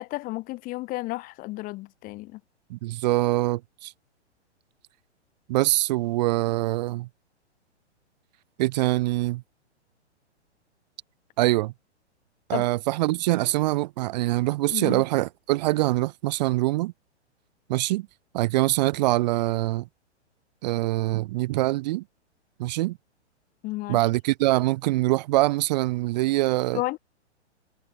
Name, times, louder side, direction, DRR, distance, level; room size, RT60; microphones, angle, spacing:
voice 1, 0.0-2.4 12.5-12.6 14.7-15.0 23.6-24.0 26.7-27.0, left 20 dB, 25° left, 1.0 m, -32 dB
voice 2, 2.7-3.9 5.5-7.1 8.6-9.4 11.4-11.7 12.5-16.9 17.7-18.1 18.3-19.9 20.6-22.0 22.6-23.0 23.9-26.8, right 18 dB, 40° right, 0.7 m, -24 dB
figure-of-eight pair, 115°, 35 cm